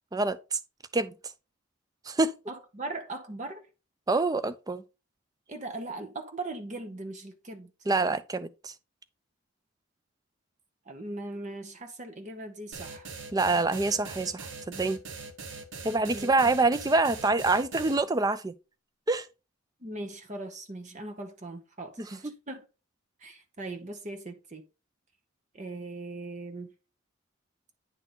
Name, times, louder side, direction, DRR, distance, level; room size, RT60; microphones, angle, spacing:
voice 1, 0.1-0.6 0.9-1.1 2.1-2.3 4.1-4.8 7.9-8.7 13.3-15.0 15.8-18.5 19.1-19.3 22.0-22.3, right 3 dB, 15° right, 0.4 m, -26 dB
voice 2, 2.5-3.6 5.5-7.7 10.9-13.1 16.1-16.5 19.8-22.6 23.2-24.6 25.5-26.7, right 2 dB, 35° right, 0.9 m, -39 dB
sound 1, 12.7-18.0, right 4 dB, 60° right, 1.1 m, -41 dB
9.1 x 3.9 x 3.9 m
head